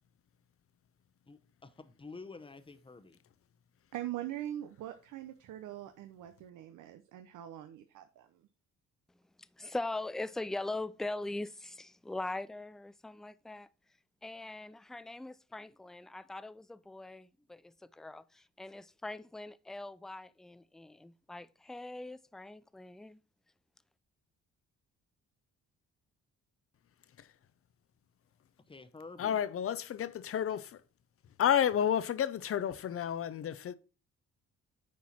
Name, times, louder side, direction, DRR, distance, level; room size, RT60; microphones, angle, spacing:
voice 1, 1.3-3.2 28.7-29.4, left 3 dB, 15° left, 0.9 m, -49 dB
voice 2, 3.9-8.3, right 13 dB, 85° right, 0.8 m, -42 dB
voice 3, 9.6-13.7 14.2-23.2, left 2 dB, ahead, 0.3 m, -41 dB
voice 4, 29.2-30.8 31.4-33.7, left 9 dB, 50° left, 0.7 m, -31 dB
9.4 x 4.6 x 4.3 m
cardioid pair, 90°, 30 cm